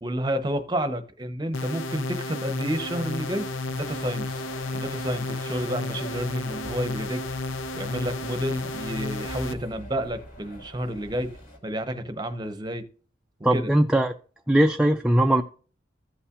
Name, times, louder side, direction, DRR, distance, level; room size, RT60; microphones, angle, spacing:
voice 1, 0.0-4.4 4.7-7.2 7.7-11.3 11.6-12.8 13.5-13.7, right 1 dB, 20° right, 10 dB, 0.8 m, -30 dB
sound 1, 1.5-9.5, left 2 dB, 90° left, 0.6 m, -32 dB
sound 2, 2.8-11.6, equal, 45° left, 2.9 m, -45 dB
voice 2, 13.4-14.1 14.5-15.4, right 1 dB, 5° right, 3 dB, 0.3 m, -20 dB
14.5 x 5.6 x 2.4 m, 0.41 s
head